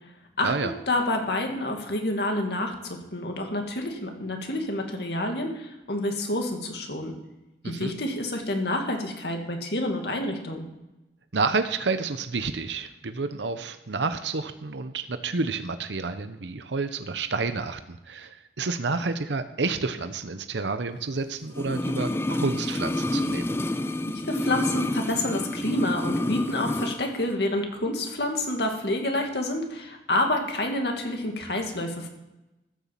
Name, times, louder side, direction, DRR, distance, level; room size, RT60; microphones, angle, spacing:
voice 1, 0.4-7.1 7.6-10.6 24.3-32.1, left 1 dB, 70° left, 3 dB, 2.3 m, -28 dB
voice 2, 7.6-8.0 11.3-23.5, right 4 dB, 90° right, 9 dB, 0.8 m, -29 dB
sound 1, 21.5-27.0 27.3-27.4, left 1 dB, 15° left, 0.4 m, -28 dB
14.0 x 7.1 x 7.5 m, 0.98 s
head